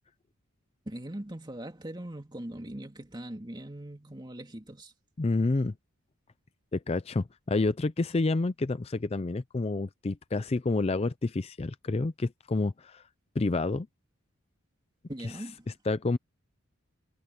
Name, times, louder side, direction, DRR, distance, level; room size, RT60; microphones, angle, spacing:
voice 1, 0.9-4.9 15.1-15.7, right 1 dB, 20° right, 2.2 m, -41 dB
voice 2, 5.2-5.7 6.7-13.0 13.4-13.9 15.9-16.2, left 3 dB, 30° left, 0.4 m, -29 dB
head